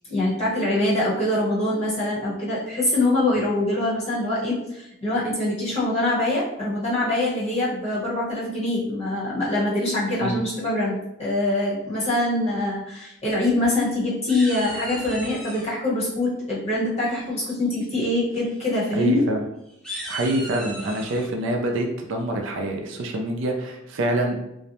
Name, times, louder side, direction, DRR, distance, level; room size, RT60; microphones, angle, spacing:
voice 1, 0.1-19.2, left 1 dB, 30° left, -7 dB, 0.9 m, -24 dB
sound 1, 13.3-13.9 14.3-15.7 17.1-17.5 17.9-18.2 18.4-18.6 18.9-19.1 19.7-21.3, right 1 dB, 5° left, 0.6 m, -37 dB
voice 2, 18.9-19.4 20.1-24.4, right 1 dB, 60° right, 2 dB, 0.4 m, -26 dB
2.5 x 2.0 x 2.8 m, 0.83 s
head